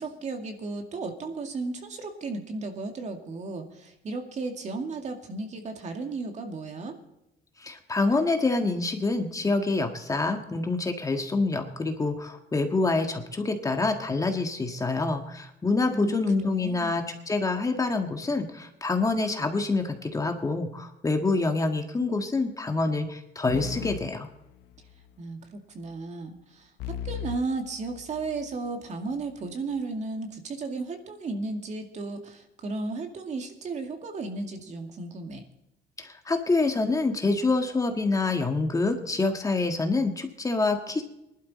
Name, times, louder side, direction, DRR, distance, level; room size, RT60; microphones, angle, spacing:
voice 1, 0.0-7.0 15.8-17.0 25.2-26.7 27.0-35.4, right 3 dB, 45° right, 4 dB, 2.2 m, -34 dB
voice 2, 7.6-24.3 36.0-41.0, left 3 dB, 20° left, 5 dB, 1.5 m, -26 dB
sound 1, 23.5-25.1 26.8-28.6, left 9 dB, 85° left, 0.8 m, -38 dB
20.0 x 11.5 x 4.2 m, 0.87 s
cardioid pair, 110°, 17 cm